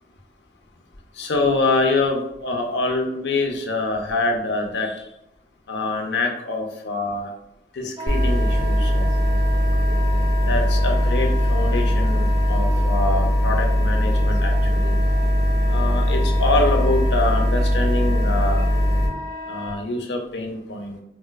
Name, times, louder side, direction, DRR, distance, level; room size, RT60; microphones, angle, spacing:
voice 1, 1.2-4.9 5.7-7.3 7.7-9.1 10.5-15.0 15.7-18.7 19.5-21.0, left 2 dB, 75° left, 3 dB, 0.5 m, -25 dB
Wind instrument woodwind instrument, 8.0-19.8, equal, 25° right, 0.4 m, -33 dB
sound 1, 8.1-19.1, equal, 20° left, 0.7 m, -20 dB
4.3 x 2.1 x 2.2 m, 0.81 s
head